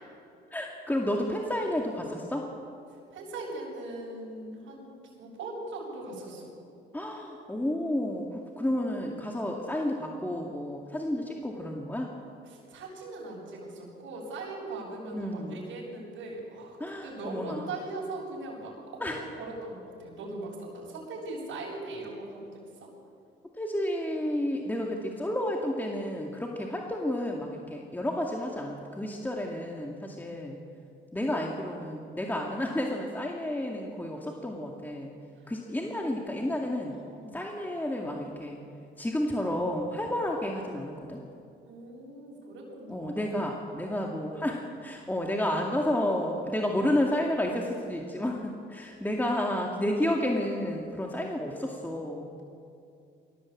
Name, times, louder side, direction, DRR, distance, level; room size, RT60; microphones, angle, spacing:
voice 1, 0.5-2.5 6.9-12.1 15.1-15.6 16.8-17.7 19.0-19.2 23.5-30.6 31.1-35.1 35.5-37.0 37.3-38.6 39.0-41.2 42.9-52.3, left 1 dB, 10° left, 0 dB, 2.4 m, -31 dB
voice 2, 3.1-4.9 5.2-6.5 12.5-16.8 17.0-22.6 35.8-37.4 41.6-43.5, right 2 dB, 80° right, -4 dB, 7.5 m, -40 dB
22.0 x 18.0 x 8.6 m, 2.5 s
cardioid pair, 90°, 20 cm